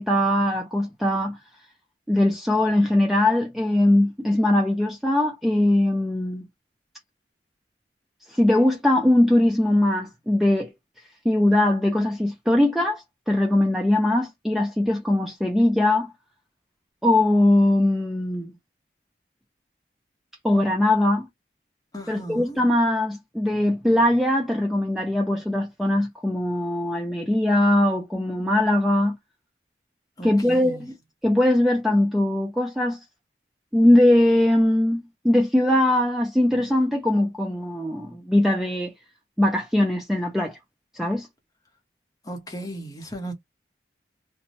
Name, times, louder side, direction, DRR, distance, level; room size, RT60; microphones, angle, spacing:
voice 1, 0.0-1.4 2.1-6.5 8.3-10.7 11.2-16.1 17.0-18.5 20.4-21.3 22.1-29.2 30.2-30.9 31.2-33.0 33.7-38.9 39.4-40.6 40.9-41.3, left 1 dB, ahead, 0.4 m, -21 dB
voice 2, 21.9-22.6 30.2-30.9 42.2-43.3, right 1 dB, 20° left, 0.8 m, -36 dB
2.6 x 2.2 x 3.0 m
head